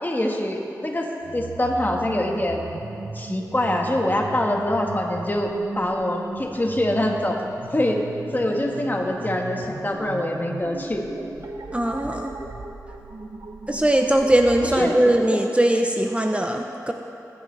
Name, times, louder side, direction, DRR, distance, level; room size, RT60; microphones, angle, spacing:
voice 1, 0.0-2.7 3.1-5.5 5.7-7.4 7.7-8.0 8.3-11.0 14.8-15.4, left 1 dB, 30° left, 1 dB, 1.6 m, -24 dB
sound 1, 1.2-15.0, right 3 dB, 80° right, 0.9 m, -37 dB
voice 2, 11.7-12.3 13.7-16.9, right 1 dB, 20° right, 3 dB, 0.8 m, -20 dB
19.0 x 10.0 x 3.4 m, 2.8 s
cardioid pair, 50°, 7 cm